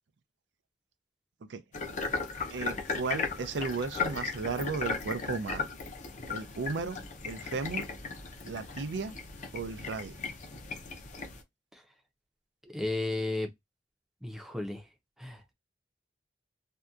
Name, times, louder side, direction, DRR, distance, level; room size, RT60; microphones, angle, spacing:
sound 1, 1.7-11.4, left 4 dB, 45° left, 0.5 m, -37 dB
voice 1, 2.5-5.7 6.3-7.9 8.5-9.2 9.5-10.2, right 4 dB, 80° right, 0.4 m, -35 dB
voice 2, 12.7-13.5 14.2-14.8 15.2-15.5, left 2 dB, ahead, 0.5 m, -33 dB
2.7 x 2.2 x 2.3 m
head